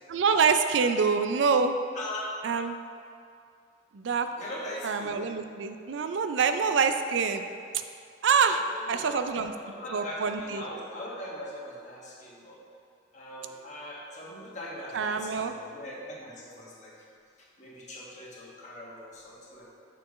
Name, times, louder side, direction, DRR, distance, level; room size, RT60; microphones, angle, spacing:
voice 1, 0.1-1.8 2.4-2.8 3.9-4.3 4.8-7.4 7.7-7.8 8.2-8.6 8.9-9.5 9.9-10.6 14.9-15.5, right 5 dB, 80° right, 8 dB, 0.4 m, -26 dB
voice 2, 1.9-2.3 4.4-5.2 8.5-12.6 13.1-16.9 17.6-19.8, left 1 dB, 40° left, -5 dB, 1.4 m, -41 dB
6.8 x 6.8 x 3.1 m, 2.3 s
head